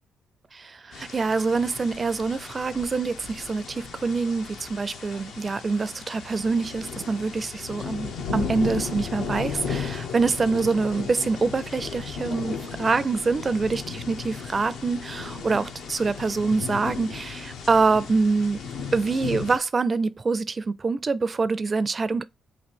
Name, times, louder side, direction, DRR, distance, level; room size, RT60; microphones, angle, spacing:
voice 1, 0.5-18.6 18.9-22.2, right 4 dB, 40° right, 0.4 m, -25 dB
sound 1, 0.9-19.6, left 5 dB, 80° left, 0.7 m, -35 dB
3.1 x 2.6 x 4.3 m
supercardioid pair, 60°, 0 cm